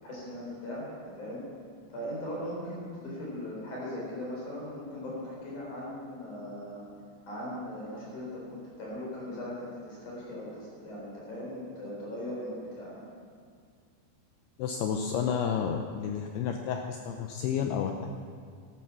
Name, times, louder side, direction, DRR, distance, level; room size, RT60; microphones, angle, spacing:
voice 1, 0.0-0.9 1.2-1.5 1.9-6.8 7.3-12.9, left 1 dB, 40° left, -5 dB, 5.4 m, -39 dB
voice 2, 14.6-18.1, left 7 dB, 85° left, 4 dB, 2.3 m, -31 dB
14.0 x 12.5 x 6.0 m, 2.1 s
omnidirectional pair, 5.5 m